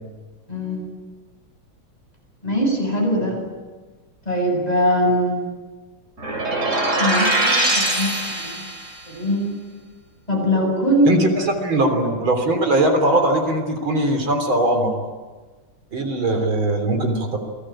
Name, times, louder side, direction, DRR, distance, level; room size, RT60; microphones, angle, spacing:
voice 1, 0.5-0.8 2.4-3.4 4.3-5.4 7.0-8.7 9.1-9.6 10.3-11.1 11.6-11.7, equal, 20° left, 0 dB, 8.1 m, -21 dB
sound 1, 6.2-9.0, right 2 dB, 35° right, 3.7 m, -22 dB
voice 2, 11.0-15.0 15.9-17.4, right 1 dB, 80° right, 5 dB, 4.2 m, -20 dB
29.0 x 20.0 x 8.9 m, 1.4 s
omnidirectional pair, 2.2 m